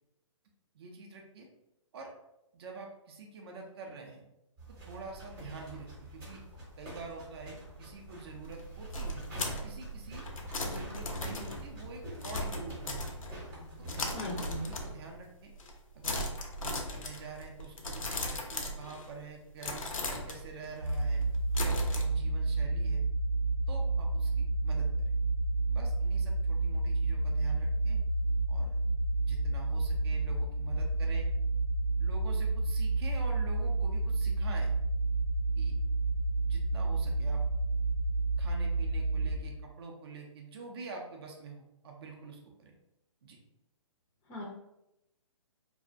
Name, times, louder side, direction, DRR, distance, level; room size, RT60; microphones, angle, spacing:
voice 1, 0.7-1.5 1.9-2.1 2.5-4.2 4.7-6.4 6.8-10.3 10.6-13.3 13.8-15.5 15.9-16.3 16.6-21.2 21.6-23.0 23.7-24.9 25.7-28.0 28.5-28.8 29.3-31.3 32.0-34.7 35.6-35.8 36.4-37.4 38.4-42.7 43.2-43.4, right 3 dB, 50° right, 1 dB, 0.5 m, -46 dB
sound 1, 4.6-14.8, right 1 dB, 15° right, 0.8 m, -47 dB
sound 2, 8.4-13.5 13.9-15.2 15.5-15.8 16.0-19.2 19.6-22.0, left 1 dB, 85° left, 0.5 m, -38 dB
voice 2, 14.1-14.6 44.3-44.4, left 1 dB, 15° left, -4 dB, 0.4 m, -38 dB
sound 3, 20.8-39.4, right 3 dB, 90° right, 0.8 m, -30 dB
2.4 x 2.0 x 2.5 m, 0.89 s
hypercardioid pair, 145°, 17 cm